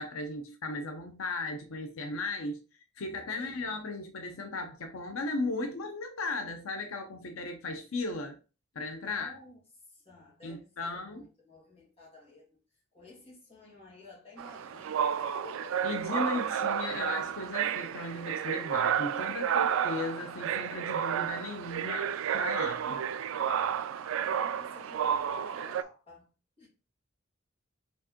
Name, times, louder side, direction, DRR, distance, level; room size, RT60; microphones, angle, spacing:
voice 1, 0.0-2.6 3.0-8.4 8.7-9.3 10.4-11.2 15.8-23.0, left 3 dB, 85° left, 0.6 m, -36 dB
voice 2, 3.4-3.7 9.1-9.6 9.9-12.6 12.9-15.9 19.1-19.7 22.8-23.1 24.2-26.3 26.6-26.7, left 2 dB, 30° left, 2.0 m, -53 dB
sound 1, 14.4-25.8, right 8 dB, 75° right, 0.3 m, -31 dB
4.4 x 3.6 x 2.9 m
head